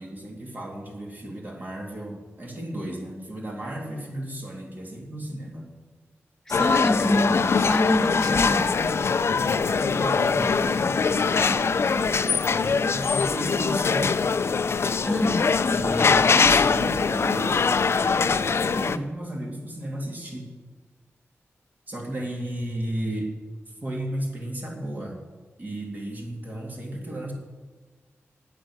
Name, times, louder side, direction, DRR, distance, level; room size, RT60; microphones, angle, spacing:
voice 1, 0.0-5.7 8.0-14.2 15.6-20.5 21.9-23.3 23.7-25.2 25.6-27.3, right 1 dB, 35° right, -1 dB, 2.7 m, -34 dB
sound 1, 6.5-19.0, left 5 dB, 60° left, 0.5 m, -22 dB
voice 2, 6.5-8.7 15.0-15.5, left 1 dB, 10° left, 6 dB, 0.8 m, -26 dB
19.5 x 7.6 x 6.3 m, 1.3 s
wide cardioid pair, 130°, 5 cm